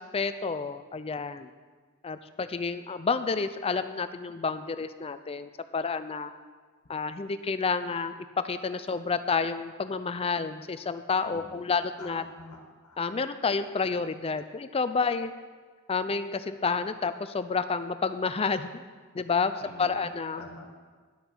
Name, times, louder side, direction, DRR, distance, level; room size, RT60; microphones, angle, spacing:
voice 1, 0.0-1.5 2.0-6.3 6.9-12.2 13.0-15.3 15.9-18.8 19.1-20.4, left 4 dB, 25° left, 11 dB, 0.4 m, -30 dB
voice 2, 11.2-11.7 12.0-13.0 19.6-20.1 20.4-20.7, left 2 dB, 90° left, 2 dB, 1.5 m, -46 dB
11.0 x 6.7 x 6.2 m, 1.5 s
head